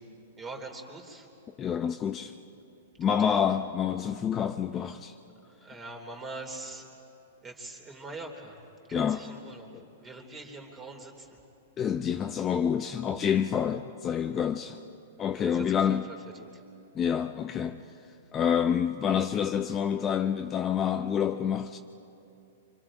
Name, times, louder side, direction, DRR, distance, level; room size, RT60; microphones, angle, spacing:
voice 1, 0.4-1.3 3.0-3.4 5.6-6.9 7.4-8.6 8.9-9.7 10.0-11.4 15.4-16.6, right 2 dB, 20° right, 3.3 m, -43 dB
voice 2, 1.6-2.3 3.0-5.1 8.9-9.2 9.7-9.9 11.8-14.8 15.2-16.1 16.9-17.8 18.3-21.8, left 8 dB, 25° left, 0.6 m, -28 dB
28.5 x 25.5 x 5.0 m
hypercardioid pair, 135°, 0 cm